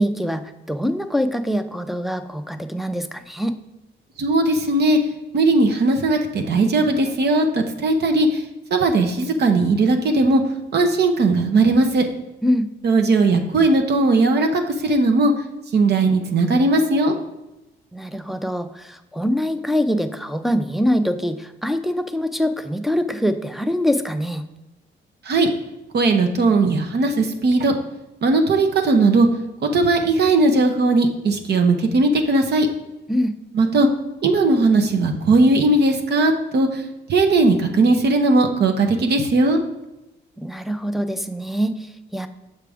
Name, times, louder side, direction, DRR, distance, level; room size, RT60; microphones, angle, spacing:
voice 1, 0.0-3.6 12.4-12.7 17.9-24.4 33.1-33.4 40.4-42.3, equal, ahead, 7 dB, 0.4 m, -24 dB
voice 2, 4.2-5.0 5.3-8.4 8.7-10.4 10.7-12.1 12.8-15.3 15.7-17.2 25.2-25.5 25.9-27.7 28.2-29.3 29.6-32.7 33.5-33.9 34.2-39.6, right 2 dB, 55° right, 4 dB, 0.8 m, -18 dB
6.7 x 4.8 x 3.5 m, 0.98 s
cardioid pair, 90°, 20 cm